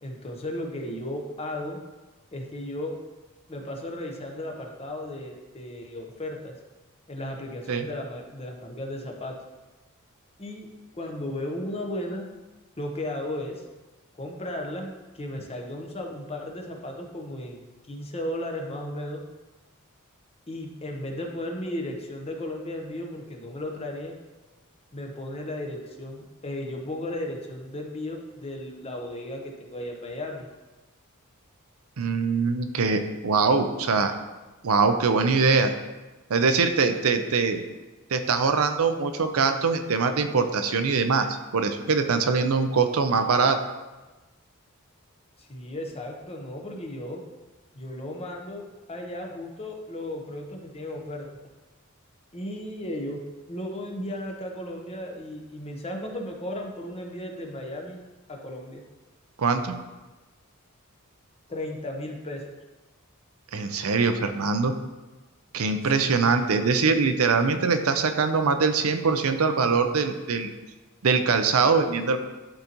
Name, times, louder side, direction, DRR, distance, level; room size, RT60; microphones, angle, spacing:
voice 1, 0.0-1.8 2.3-2.9 3.5-6.6 7.1-9.4 10.4-10.7 11.0-12.3 12.8-13.6 14.2-19.2 20.5-24.2 24.9-30.5 45.4-47.2 47.7-48.6 48.9-51.3 52.3-53.2 53.5-58.0 58.3-58.8 61.5-62.6 65.8-66.2, left 1 dB, 30° left, 2 dB, 0.9 m, -35 dB
voice 2, 32.0-34.1 34.6-35.7 36.3-37.6 38.1-43.6 59.4-59.7 63.5-64.7 65.5-70.5 71.0-72.2, right 4 dB, 85° right, 7 dB, 0.6 m, -23 dB
11.5 x 4.0 x 3.0 m, 1.2 s
head